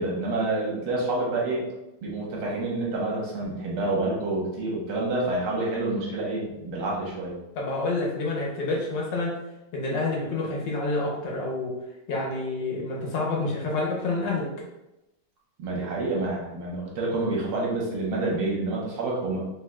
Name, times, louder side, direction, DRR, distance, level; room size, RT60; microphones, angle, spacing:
voice 1, 0.0-1.6 2.0-7.3 15.6-19.5, right 2 dB, 90° right, -3 dB, 1.9 m, -28 dB
voice 2, 7.5-9.3 9.7-11.7 12.1-14.5, left 2 dB, 65° left, -2 dB, 1.5 m, -28 dB
5.3 x 3.2 x 2.3 m, 0.94 s
omnidirectional pair, 2.3 m